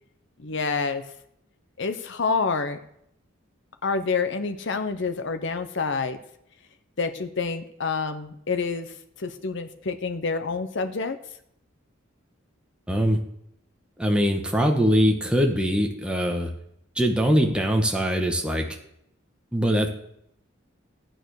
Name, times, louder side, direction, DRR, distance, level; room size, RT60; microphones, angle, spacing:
voice 1, 0.4-1.0 1.8-2.8 3.8-6.2 7.0-11.2, left 4 dB, 65° left, 9 dB, 0.9 m, -28 dB
voice 2, 12.9-13.2 14.0-16.5 16.9-18.7 19.5-19.9, equal, 5° right, 2 dB, 1.4 m, -22 dB
14.5 x 9.0 x 6.5 m, 0.75 s
head